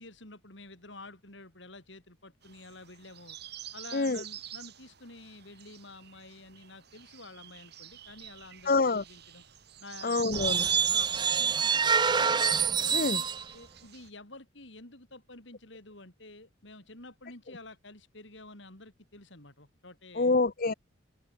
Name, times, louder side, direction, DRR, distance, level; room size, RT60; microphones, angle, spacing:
voice 1, 0.0-3.4 3.7-9.4 9.8-12.3 12.8-20.4, left 2 dB, 65° left, 4.9 m, -50 dB
sound 1, 2.4-14.1, right 12 dB, 55° right, 2.7 m, -46 dB
voice 2, 8.7-9.0 10.0-10.7 12.9-13.2 20.2-20.7, left 3 dB, 45° left, 0.8 m, -26 dB
sound 2, 10.3-13.4, right 6 dB, 20° right, 0.5 m, -26 dB
open air
head